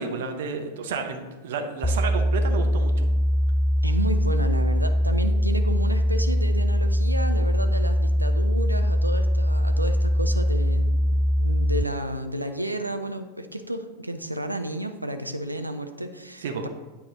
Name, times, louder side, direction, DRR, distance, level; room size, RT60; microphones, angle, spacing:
voice 1, 0.0-3.1 16.4-16.7, right 4 dB, 55° right, 5 dB, 0.8 m, -31 dB
sound 1, 1.8-11.8, equal, 10° left, 0.4 m, -22 dB
voice 2, 3.8-16.7, right 1 dB, 85° right, 7 dB, 0.5 m, -32 dB
9.0 x 4.3 x 3.7 m, 1.2 s
figure-of-eight pair, 90°, 0 cm